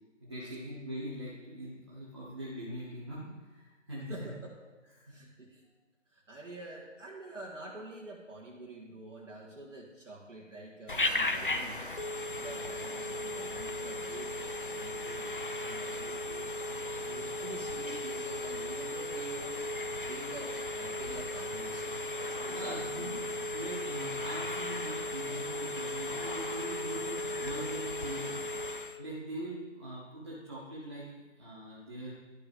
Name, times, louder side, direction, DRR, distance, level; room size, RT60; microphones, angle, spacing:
voice 1, 0.2-4.3 4.9-5.1 22.5-23.2 23.5-28.4 29.0-31.1 31.4-32.1, right 1 dB, 20° right, -7 dB, 1.0 m, -42 dB
voice 2, 4.1-4.6 5.0-5.6 6.1-11.8 12.4-16.6 17.0-19.7 20.1-21.9 22.4-23.3, right 2 dB, 75° right, -5 dB, 1.9 m, -47 dB
Telephone, 10.9-29.0, left 2 dB, 45° left, 0.5 m, -36 dB
12.5 x 5.3 x 3.5 m, 1.3 s
figure-of-eight pair, 160°, 37 cm